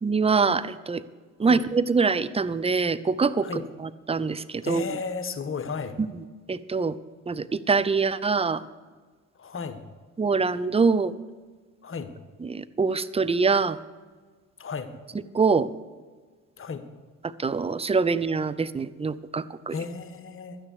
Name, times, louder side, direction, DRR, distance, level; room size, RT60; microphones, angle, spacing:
voice 1, 0.0-1.0 1.4-4.8 6.0-6.1 6.5-7.0 7.3-8.6 10.2-11.1 12.4-13.8 15.3-15.7 17.4-19.7, right 4 dB, 15° right, 15 dB, 0.6 m, -24 dB
voice 2, 4.6-6.0 9.3-9.8 11.8-12.1 14.6-14.9 16.6-16.8 19.7-20.6, left 5 dB, 35° left, 9 dB, 1.4 m, -34 dB
12.5 x 9.7 x 6.6 m, 1.4 s
hypercardioid pair, 50°, 38 cm